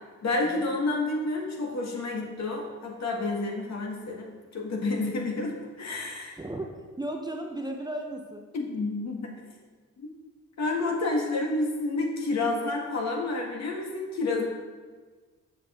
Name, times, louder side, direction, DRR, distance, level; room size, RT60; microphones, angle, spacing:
voice 1, 0.2-6.4 8.5-9.3 10.0-10.1 10.6-14.4, left 2 dB, 45° left, -1 dB, 1.9 m, -29 dB
voice 2, 6.4-8.4, right 1 dB, 10° right, 2 dB, 0.8 m, -35 dB
7.0 x 6.8 x 3.7 m, 1.4 s
hypercardioid pair, 45°, 36 cm